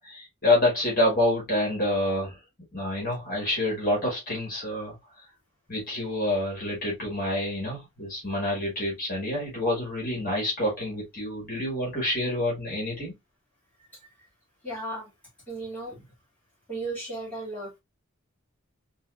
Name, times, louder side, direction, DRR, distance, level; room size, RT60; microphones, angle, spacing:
voice 1, 0.0-2.4 2.7-5.0 5.7-13.1, left 1 dB, 40° left, 1.7 m, -27 dB
voice 2, 13.9-14.3 14.6-15.1 15.5-16.1 16.7-17.8, right 2 dB, 5° left, 2.1 m, -36 dB
4.0 x 2.6 x 2.4 m
head